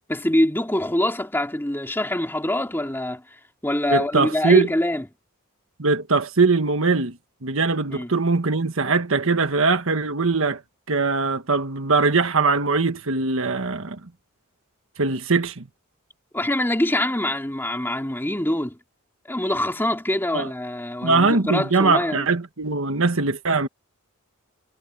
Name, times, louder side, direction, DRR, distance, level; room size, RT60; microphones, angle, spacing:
voice 1, 0.1-3.2 3.6-5.0 7.9-8.1 16.3-18.8 19.3-22.3, left 1 dB, 10° left, 2.7 m, -24 dB
voice 2, 3.9-4.7 5.8-10.6 10.9-14.0 15.0-15.7 20.3-20.5 21.0-23.7, right 4 dB, 65° right, 1.4 m, -21 dB
head